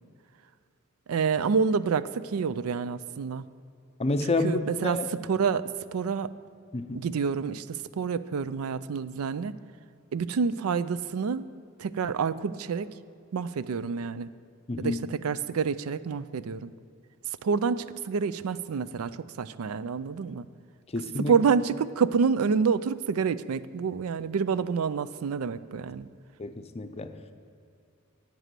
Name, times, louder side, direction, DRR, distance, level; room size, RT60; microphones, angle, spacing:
voice 1, 1.1-3.4 4.2-6.3 6.9-9.5 10.1-11.5 11.8-12.9 13.3-14.3 14.8-16.7 17.4-20.5 21.2-26.1, right 5 dB, 80° right, 16 dB, 0.4 m, -28 dB
voice 2, 4.0-5.0 6.7-7.0 14.7-15.0 20.9-21.3 26.4-27.1, left 2 dB, 30° left, 8 dB, 0.6 m, -29 dB
9.0 x 8.1 x 7.5 m, 2.4 s
head